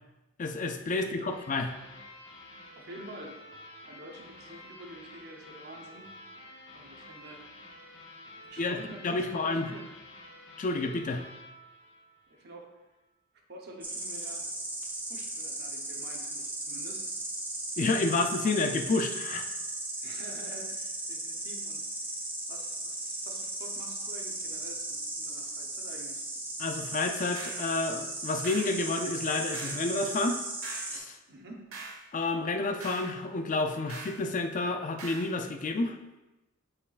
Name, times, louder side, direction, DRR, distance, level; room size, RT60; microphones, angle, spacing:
voice 1, 0.4-1.7 8.6-8.8 9.0-9.7 10.6-11.2 17.8-19.5 26.6-30.4 30.9-31.2 32.1-36.0, left 3 dB, 40° left, 6 dB, 0.4 m, -30 dB
voice 2, 0.9-1.3 2.7-3.5 3.9-6.1 6.7-7.7 8.5-9.9 12.3-12.7 13.5-14.5 15.1-17.0 20.0-21.8 22.5-26.2 31.3-31.7, right 1 dB, 50° right, 1 dB, 0.9 m, -48 dB
sound 1, 1.3-12.6, left 1 dB, 65° left, 1.2 m, -50 dB
Insect, 13.8-31.0, right 2 dB, 10° right, 0.7 m, -37 dB
sound 2, 27.3-27.7 28.4-28.8 29.5-29.9 30.6-30.9 31.7-32.0 32.8-33.1 33.9-34.2 35.0-35.3, right 3 dB, 85° right, 1.2 m, -42 dB
8.5 x 4.5 x 2.5 m, 1.0 s
head